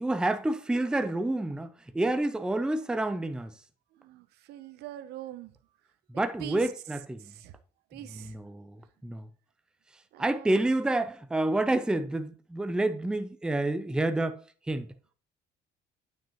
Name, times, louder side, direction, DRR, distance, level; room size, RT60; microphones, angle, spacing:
voice 1, 0.0-3.5 6.1-7.2 8.1-8.8 9.0-9.3 10.2-14.4 14.7-14.9, right 2 dB, 5° right, 0.4 m, -28 dB
voice 2, 3.9-5.5 6.4-6.7 7.2-7.6 7.9-8.3 10.1-10.6, right 13 dB, 80° right, 0.6 m, -43 dB
9.2 x 5.3 x 2.9 m
cardioid pair, 110°, 17 cm